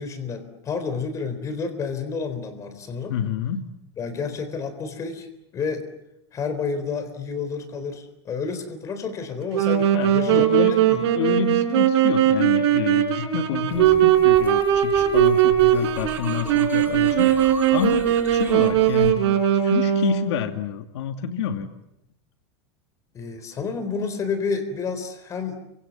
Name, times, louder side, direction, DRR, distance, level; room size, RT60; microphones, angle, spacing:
voice 1, 0.0-3.1 4.0-5.3 5.5-5.8 6.3-11.0 23.1-25.6, left 5 dB, 20° left, 8 dB, 3.9 m, -30 dB
voice 2, 3.1-3.7 9.9-10.8 11.1-19.2 19.6-21.7, left 8 dB, 75° left, 6 dB, 2.4 m, -28 dB
Wind instrument woodwind instrument, 9.5-20.4, right 10 dB, 70° right, 5.4 m, -19 dB
sound 1, 13.7-19.1, right 4 dB, 15° right, 3.9 m, -39 dB
29.5 x 25.5 x 7.2 m, 0.84 s
supercardioid pair, 160°, 14 cm